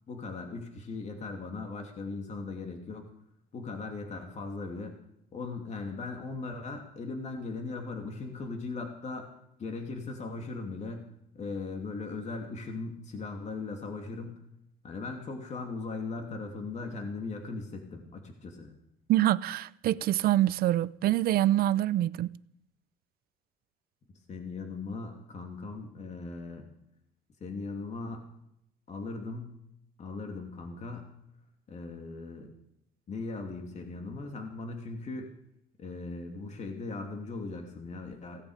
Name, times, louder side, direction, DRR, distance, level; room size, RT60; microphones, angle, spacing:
voice 1, 0.1-3.1 3.5-5.0 5.3-9.3 9.6-11.0 11.3-14.4 14.8-18.7 24.3-26.6 27.4-28.2 28.9-29.6 30.0-31.1 31.7-32.5 33.1-35.3 35.8-38.4, left 3 dB, 45° left, 2.8 m, -38 dB
voice 2, 19.1-22.4, right 13 dB, 65° right, 0.5 m, -25 dB
17.0 x 16.0 x 5.1 m
cardioid pair, 110°, 17 cm